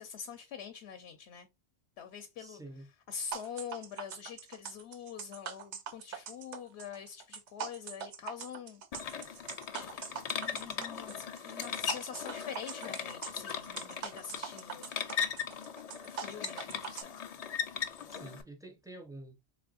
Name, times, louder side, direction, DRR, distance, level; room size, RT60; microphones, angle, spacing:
voice 1, 0.0-1.5 2.0-2.6 3.1-8.8 9.8-15.0 16.0-17.3, left 7 dB, 70° left, 0.9 m, -45 dB
voice 2, 2.4-2.9 18.1-19.5, right 2 dB, 5° right, 0.4 m, -48 dB
sound 1, 3.3-17.0, right 7 dB, 90° right, 1.0 m, -42 dB
sound 2, 8.9-18.4, left 7 dB, 55° left, 0.4 m, -39 dB
3.8 x 3.4 x 2.3 m
omnidirectional pair, 1.1 m